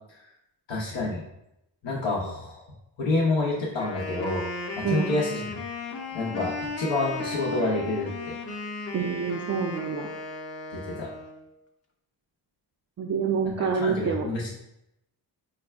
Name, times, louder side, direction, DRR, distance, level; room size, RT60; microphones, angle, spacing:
voice 1, 0.7-1.2 1.8-2.6 3.0-4.4 4.8-5.4 6.1-8.3 10.7-11.1 13.7-14.5, left 2 dB, 75° left, -5 dB, 0.8 m, -28 dB
Wind instrument woodwind instrument, 3.7-11.4, left 3 dB, 35° left, 0.7 m, -36 dB
voice 2, 8.9-10.1 13.0-14.3, right 6 dB, 35° right, 1 dB, 0.4 m, -27 dB
4.0 x 2.3 x 3.3 m, 0.85 s
cardioid pair, 50°, 45 cm